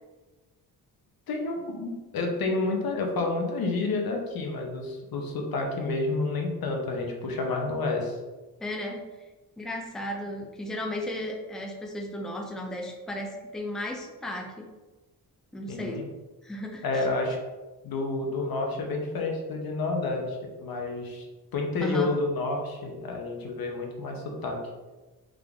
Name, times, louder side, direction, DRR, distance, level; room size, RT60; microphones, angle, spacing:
voice 1, 1.3-8.2 15.7-16.0 16.8-17.4 17.8-21.3 21.5-24.6, left 3 dB, 75° left, 2 dB, 0.9 m, -29 dB
voice 2, 8.6-9.0 9.6-14.7 15.5-16.0 16.4-17.1 21.8-22.1, left 1 dB, ahead, 1 dB, 0.5 m, -34 dB
3.7 x 3.5 x 3.5 m, 1.2 s
wide cardioid pair, 125°, 37 cm